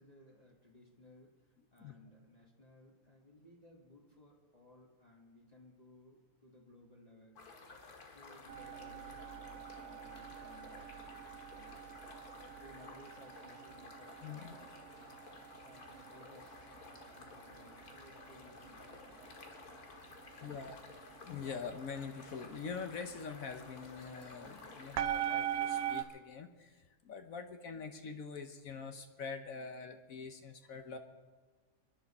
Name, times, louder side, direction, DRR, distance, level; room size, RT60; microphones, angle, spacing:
voice 1, 0.0-7.4 8.1-12.0 12.3-14.8 15.6-19.4, left 1 dB, 25° left, -1 dB, 1.6 m, -61 dB
sound 1, 7.4-26.1, left 3 dB, 90° left, 2.1 m, -54 dB
sound 2, 8.5-26.0, right 11 dB, 75° right, 1.1 m, -44 dB
voice 2, 14.2-14.6 20.4-20.8 21.2-31.0, left 5 dB, 70° left, 7 dB, 1.3 m, -44 dB
26.5 x 10.5 x 4.2 m, 1.4 s
omnidirectional pair, 1.6 m